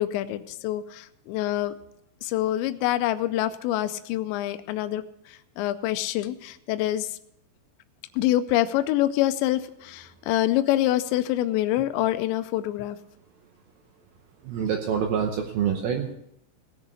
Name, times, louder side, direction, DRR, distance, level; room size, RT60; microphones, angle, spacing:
voice 1, 0.0-1.7 2.2-7.2 8.1-13.0, left 14 dB, 85° left, 10 dB, 2.6 m, -26 dB
voice 2, 14.4-16.1, right 8 dB, 85° right, 3 dB, 2.1 m, -26 dB
18.5 x 6.7 x 7.1 m, 0.78 s
omnidirectional pair, 5.8 m